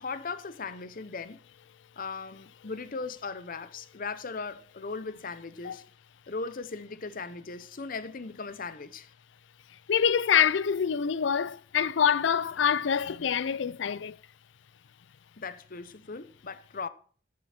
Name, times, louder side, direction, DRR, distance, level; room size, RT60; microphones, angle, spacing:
voice 1, 0.0-1.4 2.0-5.8 6.3-9.1 15.4-16.9, left 4 dB, 45° left, 0.8 m, -38 dB
voice 2, 9.9-14.2, left 7 dB, 65° left, 0.4 m, -25 dB
14.0 x 7.7 x 4.3 m
head